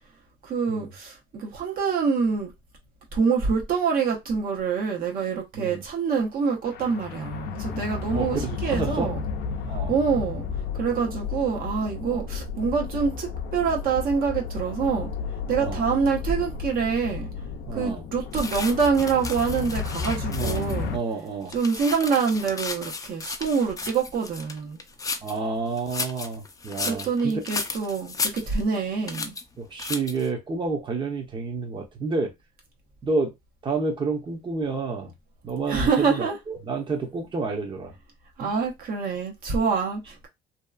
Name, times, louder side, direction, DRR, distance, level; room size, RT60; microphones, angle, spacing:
voice 1, 0.5-2.5 3.1-9.2 9.9-10.4 10.8-15.1 15.5-17.3 17.7-21.0 21.5-24.8 26.8-29.3 35.7-36.4 38.4-40.3, right 5 dB, 60° right, 0.9 m, -26 dB
sound 1, 6.7-21.0, left 5 dB, 75° left, 0.5 m, -33 dB
voice 2, 8.1-9.1 9.6-10.0 12.0-12.3 15.6-15.9 17.7-18.0 20.3-21.6 25.2-27.4 29.6-32.3 33.0-33.3 33.6-35.1 35.4-37.9 38.4-38.5, right 4 dB, 30° right, 0.8 m, -30 dB
sound 2, 18.3-20.9 21.3-25.4 25.8-28.8 29.1-29.4 29.8-30.3, left 4 dB, 20° left, 0.5 m, -34 dB
2.8 x 2.3 x 2.3 m
cardioid pair, 110°, 17 cm